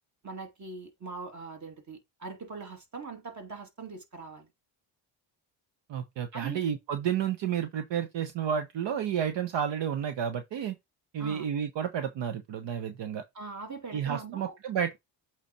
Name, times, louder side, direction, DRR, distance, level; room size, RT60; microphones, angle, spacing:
voice 1, 0.2-4.5 6.3-6.6 11.2-11.5 13.3-14.5, right 4 dB, 40° right, 2.6 m, -41 dB
voice 2, 5.9-10.8 11.1-13.2 13.9-15.0, right 8 dB, 65° right, 1.1 m, -31 dB
8.2 x 3.4 x 4.2 m
cardioid pair, 100°, 46 cm